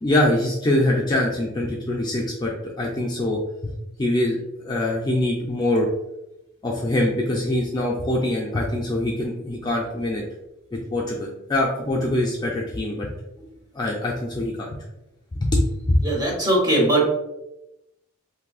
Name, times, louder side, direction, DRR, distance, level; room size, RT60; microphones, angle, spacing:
voice 1, 0.0-3.7 4.0-4.4 4.7-5.9 6.6-10.2 10.7-13.1 13.7-14.7 15.4-15.6 15.9-16.0, left 1 dB, 20° left, -3 dB, 0.4 m, -23 dB
voice 2, 16.0-17.1, right 1 dB, 20° right, -2 dB, 0.9 m, -20 dB
3.8 x 2.6 x 2.3 m, 0.91 s
head